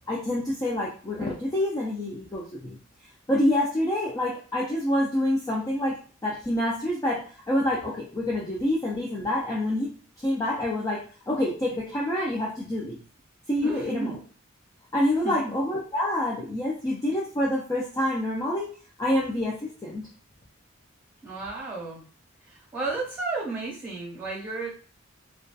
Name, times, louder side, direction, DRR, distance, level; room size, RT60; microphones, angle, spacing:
voice 1, 0.1-2.8 3.3-9.9 10.2-13.0 13.5-14.1 14.9-20.0, left 1 dB, 20° left, -4 dB, 0.3 m, -27 dB
voice 2, 13.6-14.2 15.2-15.5 16.8-16.9 21.2-22.0 22.4-24.7, right 3 dB, 10° right, -6 dB, 1.2 m, -33 dB
2.6 x 2.3 x 2.2 m, 0.39 s
head